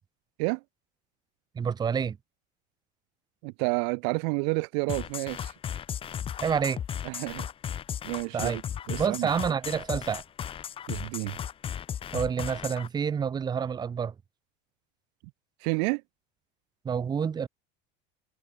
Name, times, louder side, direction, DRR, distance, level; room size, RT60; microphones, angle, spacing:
voice 1, 1.5-2.2 6.4-6.8 8.3-8.6 9.0-10.2 12.1-14.1 16.8-17.5, right 7 dB, 20° right, 0.6 m, -28 dB
voice 2, 3.4-5.5 7.0-7.5 8.0-8.6 8.9-9.3 10.9-11.4 15.6-16.0, right 40 dB or more, 70° right, 0.5 m, -30 dB
sound 1, 4.9-12.9, left 9 dB, 25° left, 0.6 m, -35 dB
supercardioid pair, 120°, 21 cm